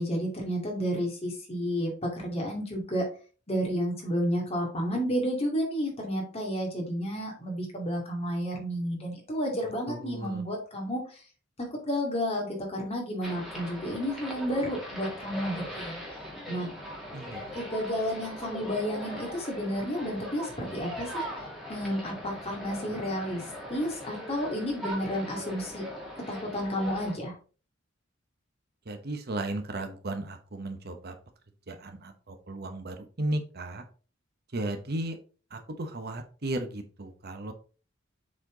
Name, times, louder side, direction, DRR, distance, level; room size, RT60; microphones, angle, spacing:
voice 1, 0.0-3.0 3.5-11.0 11.9-16.0 16.5-16.7 17.5-21.2 21.7-23.4 23.7-25.9 26.3-27.3, equal, 30° left, -1 dB, 2.5 m, -31 dB
voice 2, 9.9-10.4 17.1-17.6 28.9-31.2 31.7-33.8 34.5-35.2 35.5-37.5, right 1 dB, 55° right, 7 dB, 1.0 m, -35 dB
sound 1, 13.2-27.2, equal, ahead, 2.2 m, -40 dB
7.4 x 4.4 x 3.9 m, 0.37 s
head